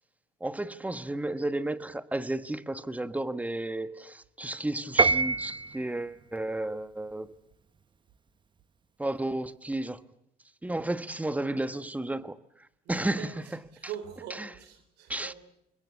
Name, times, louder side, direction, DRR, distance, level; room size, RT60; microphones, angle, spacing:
voice 1, 0.4-7.3 9.0-10.0 10.6-12.4 12.9-13.6 14.4-14.5 15.1-15.3, right 1 dB, 10° right, 1.2 m, -32 dB
Piano, 5.0-5.9, right 3 dB, 30° right, 0.9 m, -24 dB
voice 2, 12.8-13.3 13.7-15.3, right 10 dB, 85° right, 4.1 m, -42 dB
26.5 x 22.0 x 8.3 m
cardioid pair, 110°, 17 cm